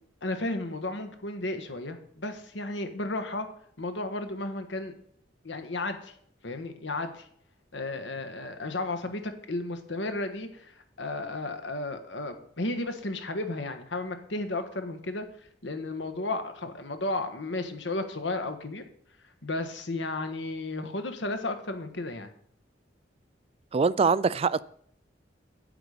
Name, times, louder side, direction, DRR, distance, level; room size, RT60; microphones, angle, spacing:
voice 1, 0.2-3.5 3.8-4.9 5.4-6.1 6.4-7.3 7.7-15.2 15.6-18.8 19.4-22.3, left 2 dB, 80° left, 1.4 m, -33 dB
voice 2, 23.7-24.6, right 5 dB, 35° right, 0.3 m, -23 dB
9.0 x 8.0 x 5.1 m
head